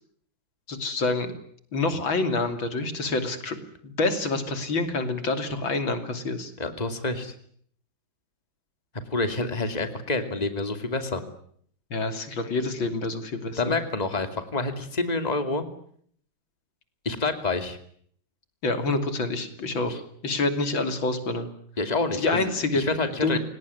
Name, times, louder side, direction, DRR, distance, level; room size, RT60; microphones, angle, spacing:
voice 1, 0.7-1.3 1.7-6.5 11.9-13.8 18.6-20.0 20.2-21.5 22.2-22.8 23.2-23.4, left 3 dB, 80° left, 8 dB, 3.7 m, -27 dB
voice 2, 6.6-7.3 9.1-11.2 13.6-15.6 17.0-17.8 19.9-20.0 21.8-22.5 22.7-23.4, left 3 dB, 20° left, 8 dB, 2.8 m, -27 dB
29.5 x 18.5 x 9.7 m, 0.63 s
omnidirectional pair, 2.1 m